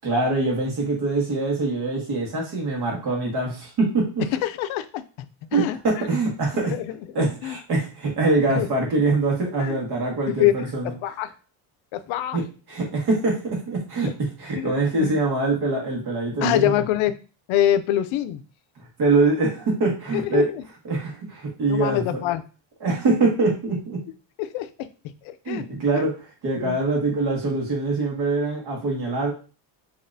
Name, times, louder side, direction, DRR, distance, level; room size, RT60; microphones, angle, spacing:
voice 1, 0.0-4.2 5.5-6.7 7.1-10.9 12.3-12.4 12.7-14.1 14.4-16.7 18.8-20.5 20.9-22.2 22.8-24.0 25.5-26.1 26.4-29.3, right 3 dB, 55° right, -1 dB, 1.8 m, -23 dB
voice 2, 4.3-5.0 5.5-6.1 6.6-7.6 8.6-8.7 9.6-9.8 10.4-10.7 11.0-11.3 11.9-12.4 14.6-15.2 16.4-17.1 17.5-18.4 20.1-20.6 21.7-22.4 24.4-24.9 25.2-25.6 25.9-26.1 26.6-26.8, left 12 dB, 80° left, 12 dB, 0.6 m, -25 dB
5.9 x 3.0 x 2.6 m, 0.36 s
cardioid pair, 170°, 47 cm